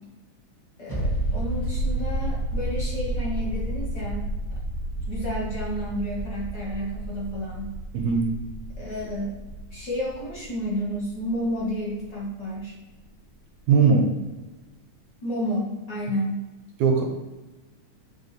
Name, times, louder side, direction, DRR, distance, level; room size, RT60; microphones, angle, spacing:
voice 1, 0.8-4.3 5.1-7.7 8.8-9.4 9.7-12.8 15.2-16.4, equal, 45° left, -6 dB, 1.7 m, -31 dB
sound 1, 0.9-12.2 12.5-12.6, right 1 dB, 10° right, 1.3 m, -31 dB
voice 2, 7.9-8.3 13.7-14.1 16.8-17.0, right 5 dB, 75° right, 2 dB, 2.1 m, -19 dB
7.0 x 5.1 x 4.1 m, 1.2 s
omnidirectional pair, 3.6 m